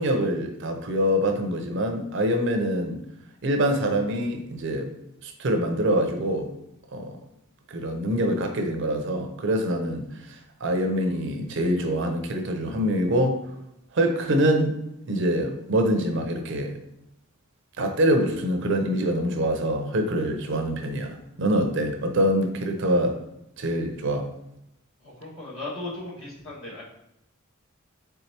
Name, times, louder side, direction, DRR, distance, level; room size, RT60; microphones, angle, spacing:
voice 1, 0.0-3.0 3.4-4.9 5.2-6.5 6.9-7.2 7.7-13.4 13.9-14.7 15.1-16.8 17.8-23.2 23.6-24.3, equal, 60° right, 5 dB, 0.6 m, -25 dB
voice 2, 25.0-26.8, left 2 dB, 65° left, -6 dB, 1.7 m, -36 dB
4.5 x 3.6 x 2.8 m, 0.80 s
head